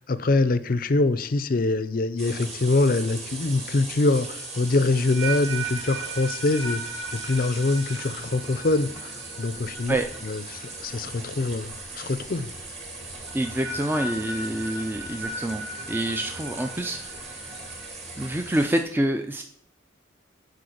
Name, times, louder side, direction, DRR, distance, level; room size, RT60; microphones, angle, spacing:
voice 1, 0.0-6.8 7.1-10.0 10.2-12.5, left 2 dB, 45° left, 14 dB, 0.5 m, -24 dB
sound 1, 2.2-18.8, right 3 dB, 35° right, 1.9 m, -39 dB
sound 2, 4.2-11.4 11.6-12.0 13.3-17.9, right 3 dB, 70° right, 1.4 m, -37 dB
voice 2, 13.3-17.4 18.2-19.4, right 1 dB, 10° right, 5 dB, 0.4 m, -27 dB
8.5 x 5.0 x 6.5 m, 0.65 s
head